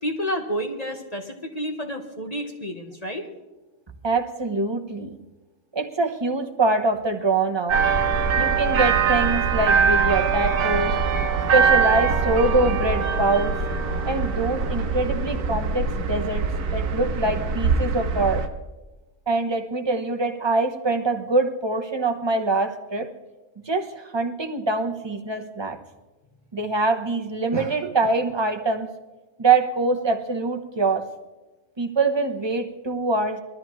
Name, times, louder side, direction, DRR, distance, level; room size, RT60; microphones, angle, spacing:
voice 1, 0.0-3.3, equal, 25° left, 2 dB, 1.2 m, -30 dB
voice 2, 4.0-5.2 5.7-7.8 8.4-11.0 11.5-13.6 14.1-16.5 16.7-18.4 19.3-23.1 23.7-25.8 26.5-28.9 29.4-31.1 31.8-33.4, right 3 dB, 20° right, 5 dB, 0.8 m, -24 dB
sound 1, 7.7-18.5, right 5 dB, 80° right, 1.5 m, -22 dB
21.5 x 13.5 x 3.1 m, 1.1 s
omnidirectional pair, 1.6 m